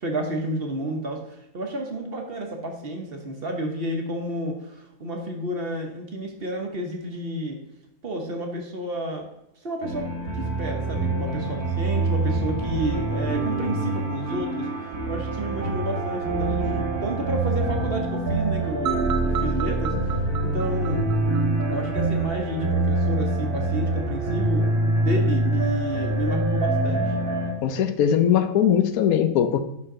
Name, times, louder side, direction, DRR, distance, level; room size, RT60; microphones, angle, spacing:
voice 1, 0.0-7.6 8.0-9.3 9.6-14.7 15.1-21.1 21.7-27.1, right 1 dB, 45° right, 3 dB, 1.1 m, -31 dB
sound 1, 9.8-27.5, right 2 dB, 90° right, 2.6 m, -25 dB
sound 2, 18.9-21.9, right 4 dB, 60° right, 0.7 m, -29 dB
voice 2, 27.6-29.6, left 9 dB, 80° left, 9 dB, 1.1 m, -20 dB
11.5 x 3.9 x 3.8 m, 0.87 s
omnidirectional pair, 1.5 m